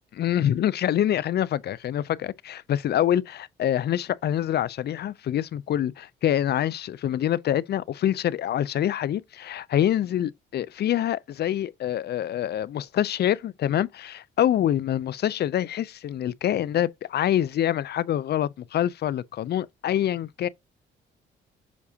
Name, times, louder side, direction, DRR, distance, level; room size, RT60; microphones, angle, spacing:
voice 1, 0.1-20.5, left 11 dB, 55° left, 0.5 m, -26 dB
7.3 x 4.7 x 2.8 m
cardioid pair, 90°, 20 cm